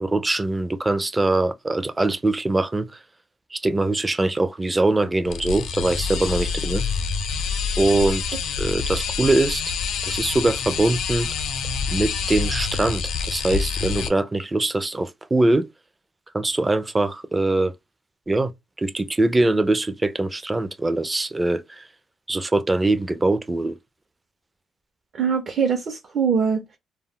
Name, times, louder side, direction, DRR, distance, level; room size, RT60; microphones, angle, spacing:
voice 1, 0.0-3.0 3.5-6.9 7.8-8.2 8.6-9.7 10.0-11.3 11.9-15.7 16.3-17.7 18.3-18.5 18.8-21.9 22.3-23.8, right 2 dB, 20° right, 0.4 m, -22 dB
sound 1, 5.2-14.1, left 6 dB, 80° left, 0.4 m, -27 dB
voice 2, 25.1-26.8, right 6 dB, 55° right, 0.6 m, -23 dB
2.2 x 2.0 x 3.5 m
cardioid pair, 90°, 0 cm